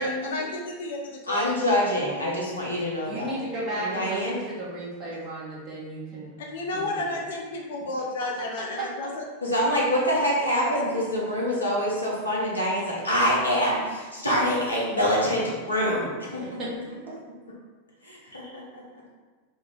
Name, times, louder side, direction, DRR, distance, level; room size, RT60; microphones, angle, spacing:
voice 1, 0.2-1.5 6.5-9.2 10.6-11.0, left 2 dB, 60° left, 0 dB, 0.5 m, -32 dB
voice 2, 1.3-3.3 3.8-4.4 9.4-16.4 18.0-18.6, equal, 80° left, -5 dB, 0.9 m, -25 dB
voice 3, 3.0-6.3 6.7-7.2 8.8-8.9 16.4-16.7, right 1 dB, 30° right, -7 dB, 1.2 m, -34 dB
3.1 x 2.3 x 3.8 m, 1.3 s
figure-of-eight pair, 90°, 0 cm